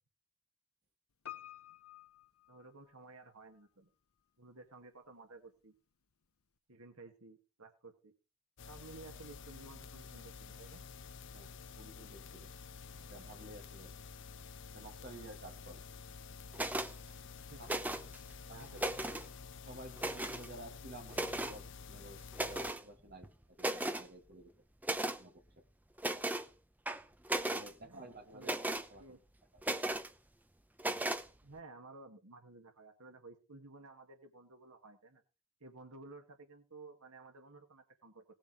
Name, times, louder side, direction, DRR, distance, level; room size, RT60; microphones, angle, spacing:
Piano, 1.2-3.3 3.6-3.7, left 12 dB, 75° left, 0.9 m, -51 dB
voice 1, 2.5-3.9 4.4-5.7 6.7-8.1 8.7-10.8 17.5-17.7 18.4-19.2 27.8-28.6 29.0-29.2 31.4-35.2 35.6-38.2, right 3 dB, 80° right, 5 dB, 2.1 m, -54 dB
sound 1, 8.6-22.7, left 5 dB, 55° left, 0.6 m, -50 dB
voice 2, 11.8-12.5 13.1-13.9 14.7-15.8 17.6-17.7 18.5-18.7 19.7-24.5 25.0-25.6 27.5-29.0, right 1 dB, 45° right, 2 dB, 2.7 m, -52 dB
sound 2, 16.5-16.9 17.6-18.2 18.6-19.3 20.0-20.5 21.1-21.6 22.3-22.8 23.2-23.3 23.6-24.1 24.8-25.2 26.0-26.5 26.9-27.7 28.4-28.9 29.6-30.1 30.8-31.2, right 1 dB, 5° right, 0.7 m, -36 dB
18.0 x 7.1 x 4.9 m, 0.31 s
head